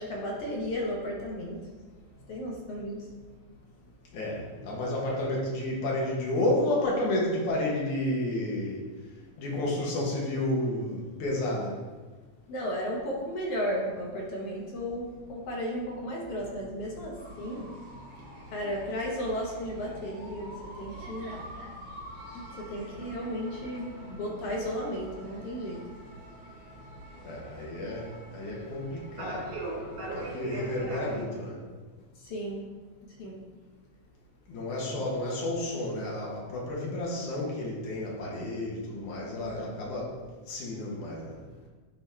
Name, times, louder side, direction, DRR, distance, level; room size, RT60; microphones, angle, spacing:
voice 1, 0.0-1.6 2.3-3.1 12.5-17.7 18.5-21.4 22.3-25.8 32.2-32.7 33.1-33.4 34.9-35.1 39.3-39.7, equal, 60° left, -1 dB, 1.9 m, -34 dB
voice 2, 4.1-8.8 9.4-11.7 27.2-28.0 28.3-29.4 29.7-31.5 34.5-40.1 40.5-41.3, left 1 dB, 85° left, -3 dB, 2.9 m, -31 dB
sound 1, 17.2-31.2, right 1 dB, 75° right, 3.2 m, -44 dB
10.5 x 3.8 x 4.4 m, 1.4 s
omnidirectional pair, 3.4 m